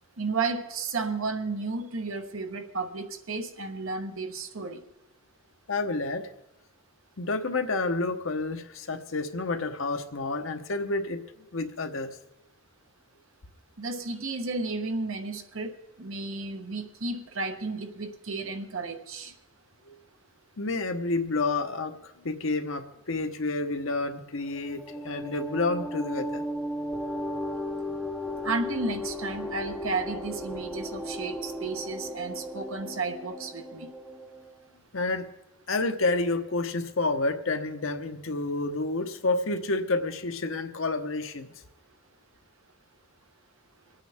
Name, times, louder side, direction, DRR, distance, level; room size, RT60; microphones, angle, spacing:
voice 1, 0.2-4.8 13.8-19.3 28.4-33.9, right 3 dB, 70° right, 6 dB, 1.1 m, -33 dB
voice 2, 5.7-6.3 7.2-11.2 11.5-12.1 19.9-20.0 20.6-26.4 34.9-35.3 35.7-41.5, left 3 dB, 65° left, 7 dB, 1.0 m, -29 dB
sound 1, 24.4-34.7, left 1 dB, ahead, 0.6 m, -36 dB
26.0 x 9.1 x 3.5 m, 0.93 s
head